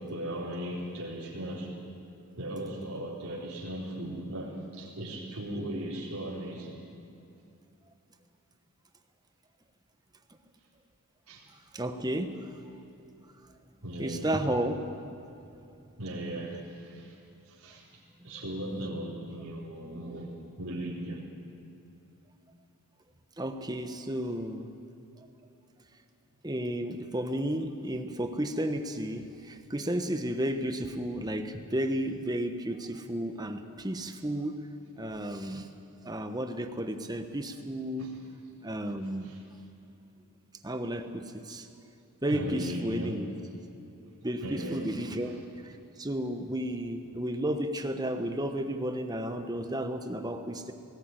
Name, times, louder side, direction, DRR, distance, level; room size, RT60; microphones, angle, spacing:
voice 1, 0.0-1.8 2.4-6.8 11.3-11.5 13.8-14.3 16.0-17.2 17.5-20.3 20.6-21.2 38.0-38.1 39.2-39.4 42.3-43.2 44.4-45.4, right 1 dB, 80° right, -5 dB, 3.9 m, -37 dB
voice 2, 11.7-12.5 14.0-15.2 23.4-24.7 26.4-34.6 35.0-35.7 36.0-38.1 38.6-39.4 40.6-41.7 42.2-43.3 44.2-45.3 45.6-50.7, right 1 dB, 15° right, 7 dB, 1.2 m, -33 dB
19.0 x 18.0 x 9.1 m, 2.7 s
head